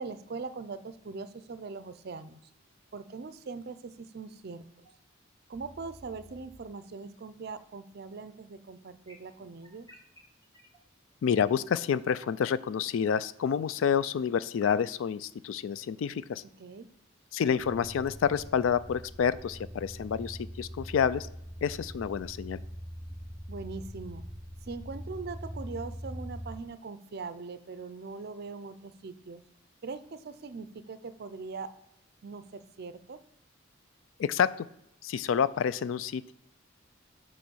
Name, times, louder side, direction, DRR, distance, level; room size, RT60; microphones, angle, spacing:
voice 1, 0.0-2.4 2.9-4.9 5.5-9.9 16.6-16.9 23.5-24.3 24.6-29.4 29.8-31.7 32.2-33.2, right 4 dB, 50° right, 13 dB, 0.5 m, -41 dB
sound 1, 4.8-4.9 5.5-6.6 9.1-10.8, equal, 15° left, 1.2 m, -53 dB
voice 2, 11.2-16.4 17.3-21.3 21.6-22.6 34.2-34.7 35.0-36.3, left 7 dB, 75° left, 17 dB, 0.3 m, -28 dB
sound 2, 17.6-26.5, equal, ahead, 1.7 m, -42 dB
7.9 x 3.1 x 6.2 m, 0.80 s
head